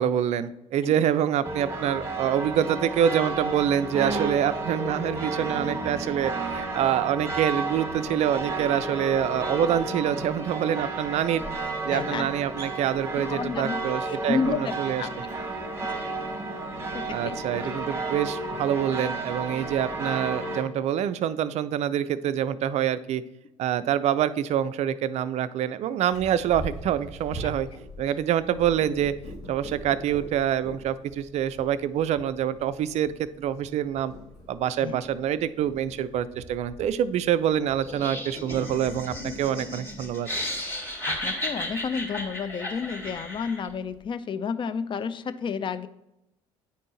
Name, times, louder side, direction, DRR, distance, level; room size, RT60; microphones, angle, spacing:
voice 1, 0.0-11.4 11.8-15.0 17.1-23.2 23.6-27.7 28.0-29.1 29.5-34.1 34.5-40.3, right 10 dB, 45° right, 15 dB, 0.4 m, -26 dB
sound 1, 1.4-20.6, right 3 dB, 15° right, 1.1 m, -32 dB
voice 2, 11.9-12.3 13.2-14.7 15.0-15.1 15.8-16.0 16.9-17.4 27.4-27.5 34.8-35.0 41.1-45.9, left 6 dB, 30° left, 14 dB, 0.4 m, -31 dB
Purr, 26.1-44.0, equal, 70° left, 1.6 m, -44 dB
Laughter, 37.8-43.7, left 1 dB, 15° left, 2.3 m, -34 dB
9.3 x 4.2 x 3.1 m, 0.89 s
figure-of-eight pair, 55°, 16 cm